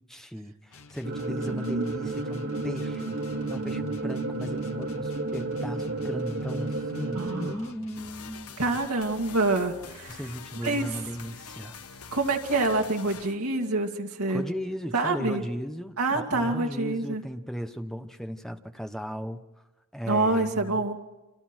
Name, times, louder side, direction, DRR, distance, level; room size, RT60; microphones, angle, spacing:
voice 1, 0.1-3.2 3.5-8.6 10.1-12.1 14.3-19.4 19.9-20.8, equal, ahead, 6 dB, 1.2 m, -36 dB
sound 1, 0.7-8.1, left 3 dB, 70° left, 2.0 m, -50 dB
sound 2, 1.0-7.6, right 2 dB, 45° right, 1.5 m, -32 dB
voice 2, 1.5-1.8 2.4-2.5 7.1-7.5 8.6-10.2 10.6-10.9 12.1-14.4 14.9-15.4 16.0-17.2 20.1-21.0, right 2 dB, 80° right, 1 dB, 2.4 m, -26 dB
sound 3, 7.9-13.4, left 6 dB, 85° left, 1.3 m, -45 dB
30.0 x 26.0 x 4.6 m, 1.1 s
head